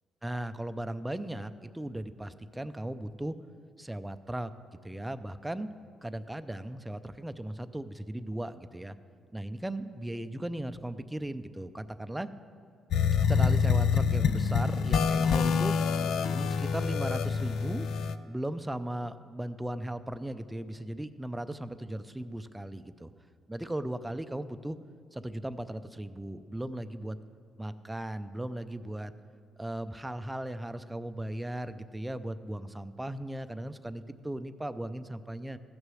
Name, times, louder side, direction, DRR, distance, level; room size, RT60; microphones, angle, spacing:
voice 1, 0.2-3.3 3.8-4.5 4.8-5.7 6.0-9.0 9.3-12.3 13.2-15.7 16.3-17.9 18.3-23.1 23.5-24.8 25.1-27.2 27.6-29.1 29.6-35.6, right 1 dB, 10° right, 11 dB, 0.5 m, -37 dB
sound 1, 12.9-18.2, left 6 dB, 75° left, 0.4 m, -26 dB
14.5 x 6.5 x 6.3 m, 2.4 s
cardioid pair, 90°, 0 cm